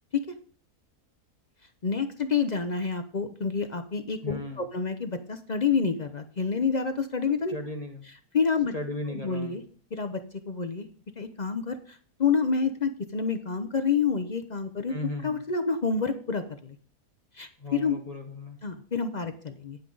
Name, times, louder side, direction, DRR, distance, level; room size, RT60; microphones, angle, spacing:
voice 1, 1.8-7.6 8.3-8.7 9.1-9.6 9.9-10.2 10.5-10.9 11.2-14.9 15.2-16.8 17.4-18.0 18.6-19.8, left 5 dB, 45° left, 8 dB, 0.5 m, -28 dB
voice 2, 4.2-4.6 7.5-8.1 8.7-9.6 14.9-15.4 17.6-18.6, left 2 dB, 25° left, 3 dB, 1.0 m, -36 dB
10.0 x 9.2 x 3.9 m, 0.44 s
omnidirectional pair, 1.7 m